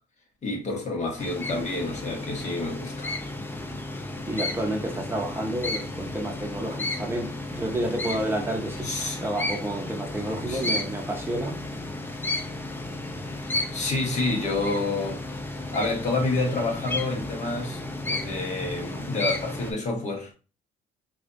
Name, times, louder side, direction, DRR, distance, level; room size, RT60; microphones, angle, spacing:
voice 1, 0.4-3.1 8.8-9.2 10.4-10.8 13.4-15.2 15.7-17.8 18.1-20.3, left 2 dB, 45° left, 1.2 m, -29 dB
sound 1, 1.2-19.7, left 2 dB, 10° left, 0.6 m, -33 dB
voice 2, 4.3-11.6, right 1 dB, 15° right, 0.8 m, -30 dB
4.8 x 2.4 x 2.6 m
cardioid pair, 110°, 17 cm